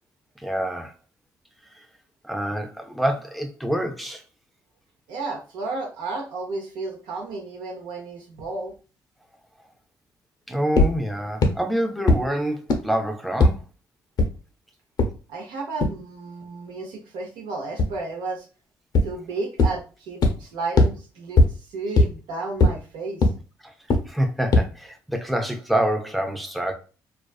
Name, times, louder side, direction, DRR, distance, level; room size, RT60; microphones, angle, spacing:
voice 1, 0.4-0.9 1.8-1.9 2.2-4.2 10.5-13.6 23.6-23.7 24.1-26.7, right 1 dB, ahead, 0.5 m, -26 dB
voice 2, 5.1-8.7 15.3-18.5 19.0-23.3, right 3 dB, 85° right, 0.7 m, -33 dB
sound 1, 10.8-10.9 11.4-11.5 12.1-12.2 12.7-12.8 13.4-13.5 14.2-14.3 15.0-15.1 15.8-15.9 17.8-17.9 19.0-19.1 19.6-19.7 20.2-20.3 20.8-20.9 21.4-21.5 22.0-22.1 22.6-22.7 23.2-23.3 23.9-24.0 24.5-24.6, left 2 dB, 60° left, 0.5 m, -15 dB
2.4 x 2.3 x 2.3 m
supercardioid pair, 70°, 8 cm